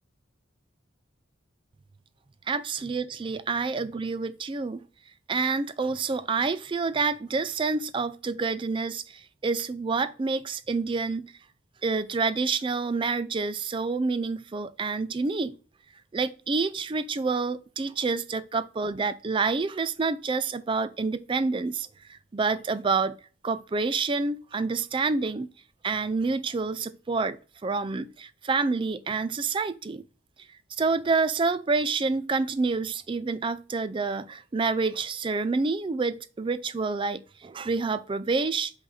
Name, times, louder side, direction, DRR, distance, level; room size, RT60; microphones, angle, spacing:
voice 1, 2.5-4.8 5.3-11.3 11.8-15.6 16.1-23.2 23.4-25.5 25.8-30.0 30.8-38.7, right 4 dB, 25° right, 0.3 m, -28 dB
5.1 x 4.0 x 4.9 m
head